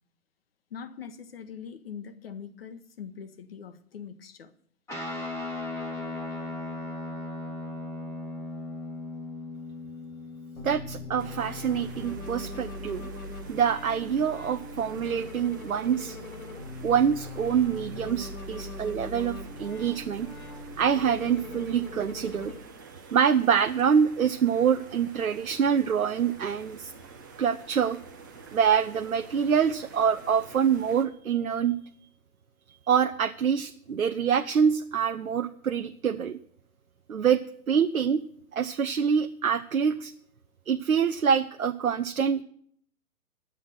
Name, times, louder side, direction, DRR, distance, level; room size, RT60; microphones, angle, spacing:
voice 1, 0.7-4.5, left 7 dB, 40° left, 1.0 m, -42 dB
Guitar, 4.9-12.5, left 2 dB, 5° left, 1.1 m, -38 dB
sound 1, 10.6-22.6, left 2 dB, 65° left, 2.1 m, -40 dB
voice 2, 10.6-13.1 13.5-16.2 16.8-20.3 20.8-22.5 23.1-26.9 27.4-28.0 28.5-31.7 32.9-36.4 37.1-37.4 37.7-38.2 38.5-40.1 40.7-42.4, right 7 dB, 65° right, 0.7 m, -25 dB
sound 2, 11.2-31.0, right 5 dB, 15° right, 0.6 m, -48 dB
10.0 x 7.8 x 9.3 m
figure-of-eight pair, 125°, 45 cm